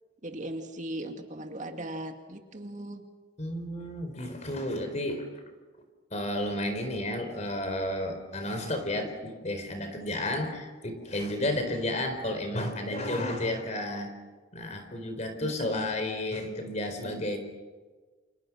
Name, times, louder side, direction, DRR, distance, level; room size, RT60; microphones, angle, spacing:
voice 1, 0.2-3.0 15.4-15.9, right 1 dB, 40° right, 5 dB, 2.2 m, -38 dB
voice 2, 3.4-5.2 6.1-14.1 14.5-17.4, left 1 dB, 35° left, 7 dB, 4.4 m, -32 dB
29.5 x 28.0 x 6.3 m, 1.4 s
head